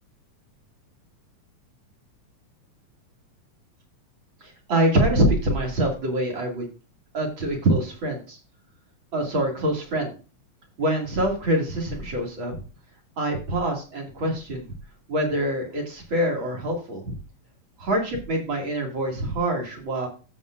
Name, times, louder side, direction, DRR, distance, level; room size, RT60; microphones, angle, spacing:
voice 1, 4.4-6.7 7.1-8.4 9.1-10.1 10.8-12.6 13.2-14.7 15.1-17.2 17.8-20.1, right 1 dB, 45° right, 0 dB, 2.8 m, -25 dB
14.0 x 7.1 x 2.5 m, 0.33 s
omnidirectional pair, 3.4 m